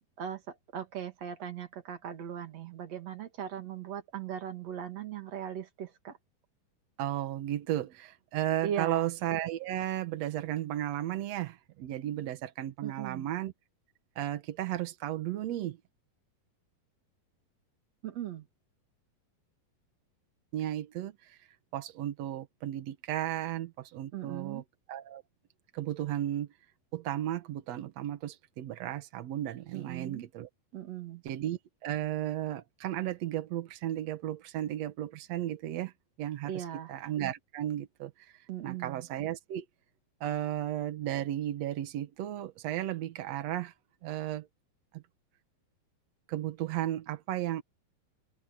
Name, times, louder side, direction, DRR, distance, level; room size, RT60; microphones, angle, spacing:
voice 1, 0.2-6.2 8.6-9.1 12.8-13.2 18.0-18.5 24.1-24.6 29.7-30.3 30.7-31.2 36.5-36.9 38.5-39.1, right 9 dB, 50° right, 2.9 m, -39 dB
voice 2, 7.0-13.5 14.1-15.8 20.5-21.4 21.7-24.6 24.9-25.2 25.7-26.5 26.9-30.5 31.2-35.9 36.2-39.6 40.2-43.7 44.0-44.5 44.9-45.0 46.3-47.6, right 12 dB, 70° right, 1.6 m, -34 dB
omnidirectional pair, 4.4 m